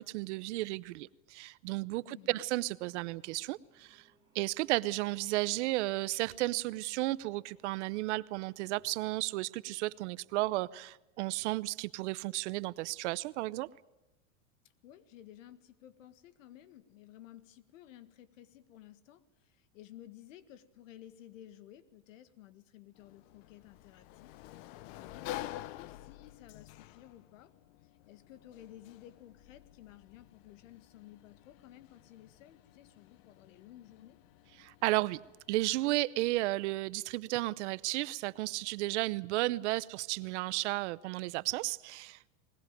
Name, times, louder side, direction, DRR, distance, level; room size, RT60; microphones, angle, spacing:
voice 1, 0.0-4.0 4.3-13.7 34.6-35.2 35.5-42.3, right 19 dB, 60° right, 19 dB, 0.8 m, -33 dB
voice 2, 2.1-2.4 14.8-27.5 27.8-34.2, left 12 dB, 70° left, 13 dB, 1.8 m, -55 dB
sound 1, 2.7-9.2, right 4 dB, 10° right, 5.0 m, -69 dB
Sliding door, 23.0-35.6, left 15 dB, 45° left, 0.9 m, -49 dB
21.0 x 20.5 x 9.0 m, 1.0 s
supercardioid pair, 145°, 39 cm